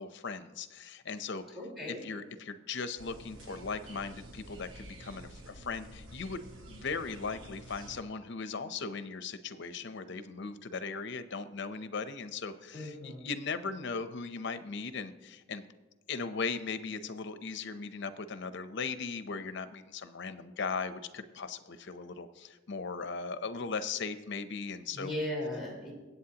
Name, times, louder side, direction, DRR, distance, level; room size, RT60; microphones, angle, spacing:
voice 1, 0.0-1.6 1.9-15.7 16.1-25.1, left 4 dB, 60° left, 11 dB, 0.7 m, -38 dB
voice 2, 1.5-2.0 12.7-13.3 24.9-25.9, left 1 dB, ahead, -4 dB, 4.2 m, -37 dB
sound 1, 3.0-8.0, right 1 dB, 80° right, 1.3 m, -50 dB
23.5 x 8.4 x 2.9 m, 1.2 s
head